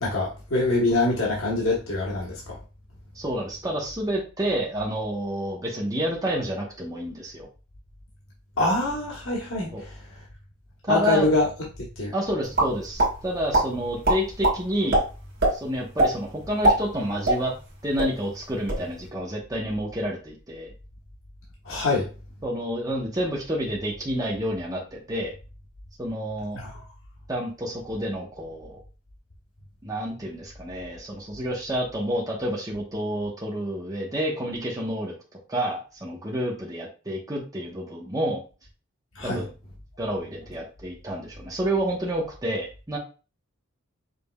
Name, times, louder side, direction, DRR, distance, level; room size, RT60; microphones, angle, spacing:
voice 1, 0.0-2.6 8.6-9.9 10.9-11.5 12.0-12.1 21.6-22.1 26.5-26.7 39.2-39.4, left 2 dB, 85° left, -3 dB, 1.1 m, -24 dB
voice 2, 3.1-7.5 9.7-9.8 10.8-11.3 12.1-15.0 15.5-17.5 17.8-20.7 22.4-25.3 26.0-26.6 27.3-28.8 29.8-35.1 35.5-38.4 39.2-39.5 40.0-43.0, equal, 15° right, -2 dB, 0.8 m, -29 dB
sound 1, 12.5-13.1 13.5-13.7 14.0-14.6 14.9-15.0 15.4-15.5 16.0-16.1 16.5-17.7 18.0-18.1 18.5-18.8, right 2 dB, 55° right, 1.9 m, -20 dB
5.3 x 3.3 x 2.2 m, 0.34 s
head